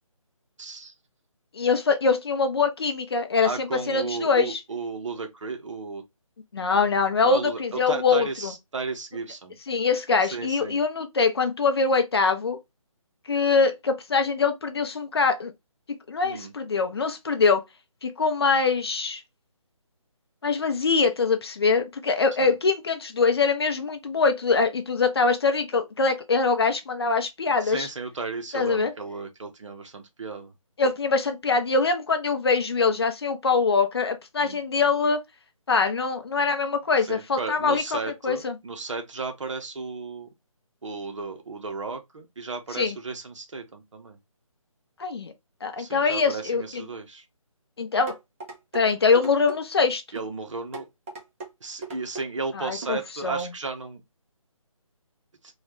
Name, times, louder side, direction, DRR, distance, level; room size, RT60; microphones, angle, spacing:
voice 1, 0.6-0.9 3.4-6.0 6.7-6.8 7.2-9.6 10.3-10.8 16.2-16.5 22.4-22.5 27.6-30.5 34.4-34.6 37.1-40.3 40.8-44.2 45.8-47.2 50.1-50.8 51.6-54.0, right 4 dB, 60° right, 0.9 m, -34 dB
voice 2, 1.5-4.6 6.5-8.5 9.7-12.6 13.3-15.5 16.1-17.6 18.0-19.2 20.4-27.9 28.5-28.9 30.8-35.2 35.7-38.6 42.7-43.0 45.0-45.3 45.6-46.8 47.8-48.2 48.7-50.0 52.5-53.5, left 4 dB, 45° left, 0.6 m, -23 dB
sound 1, 48.1-48.8 49.1-49.6 50.1-50.3 50.7-51.5 51.8-52.3 52.8-53.0 53.4-53.5, right 3 dB, 25° right, 0.7 m, -38 dB
3.2 x 2.3 x 3.0 m
figure-of-eight pair, 155°, 18 cm